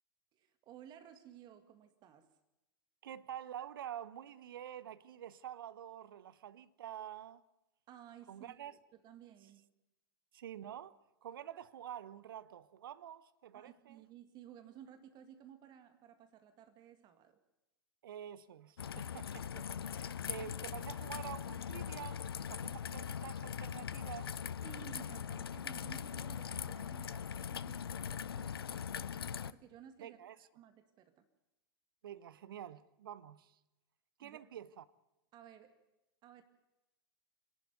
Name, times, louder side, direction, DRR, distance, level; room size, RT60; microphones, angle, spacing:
voice 1, 0.3-2.3 7.9-9.6 13.5-17.4 24.6-30.2 30.5-31.3 34.2-34.4 35.3-35.8 36.2-36.4, right 10 dB, 35° right, 2.1 m, -56 dB
voice 2, 3.0-7.4 8.3-8.7 10.3-14.0 18.0-24.4 30.0-30.4 32.0-33.6 34.2-34.8, right 10 dB, 60° right, 0.9 m, -48 dB
Raindrop / Trickle dribble, 18.8-29.5, left 8 dB, 70° left, 0.6 m, -41 dB
25.0 x 11.5 x 9.3 m
figure-of-eight pair, 95°, 13 cm